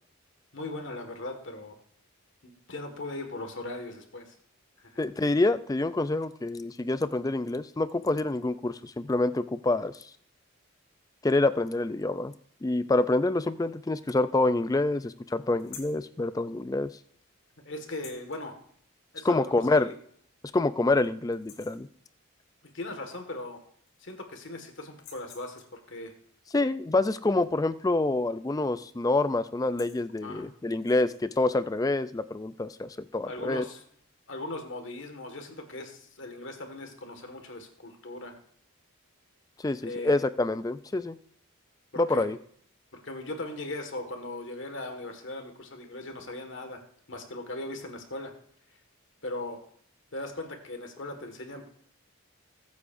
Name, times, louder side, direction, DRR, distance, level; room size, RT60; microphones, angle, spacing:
voice 1, 0.5-1.8 2.4-4.3 4.8-5.0 17.6-18.6 19.1-19.9 22.7-23.6 24.0-26.1 30.2-30.5 33.3-33.8 34.3-38.3 39.8-40.1 41.9-42.3 42.9-46.8 47.1-48.3 49.2-49.6 50.1-51.7, left 2 dB, 60° left, 5 dB, 1.7 m, -39 dB
voice 2, 5.0-10.1 11.2-12.3 12.6-16.9 19.2-19.9 20.5-21.9 26.5-33.6 39.6-41.2 42.0-42.4, left 2 dB, 15° left, 13 dB, 0.3 m, -27 dB
sound 1, 15.6-16.0 17.9-18.4 19.8-19.9 20.3-20.4 20.8-21.1 21.3-21.9 23.2-23.3 23.6-24.3 24.9-25.8 28.2-28.5 28.8-29.0 29.5-30.1 30.7-31.2, left 7 dB, 80° left, 3.3 m, -50 dB
20.0 x 8.3 x 2.6 m, 0.64 s
head